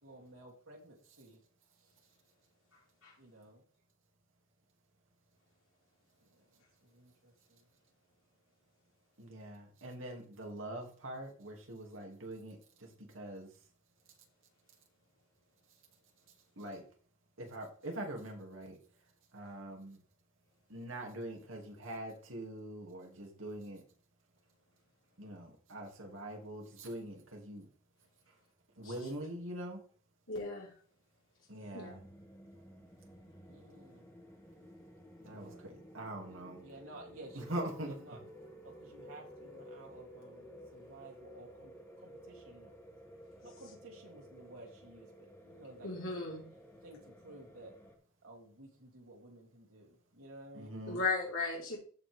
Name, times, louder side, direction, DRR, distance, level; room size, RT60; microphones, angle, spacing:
voice 1, 0.0-1.4 3.2-3.6 6.2-7.6 33.5-34.1 35.2-35.7 36.6-38.2 38.6-41.7 42.0-42.7 43.4-45.1 45.4-46.1 46.8-47.7 48.2-50.7, right 2 dB, 90° right, -1 dB, 3.2 m, -54 dB
voice 2, 9.2-12.6 13.1-13.5 16.6-16.8 17.4-18.8 19.3-20.0 20.7-23.8 25.2-27.7 28.8-29.8 31.5-32.0 35.2-36.6 37.3-37.9 50.5-51.0, right 1 dB, 70° right, 1 dB, 2.8 m, -43 dB
voice 3, 30.3-30.7 31.7-32.0 45.8-46.5 50.9-51.8, left 3 dB, 75° left, -4 dB, 4.3 m, -36 dB
sound 1, 31.7-47.9, equal, 10° left, 2.1 m, -54 dB
14.5 x 5.1 x 3.7 m, 0.43 s
head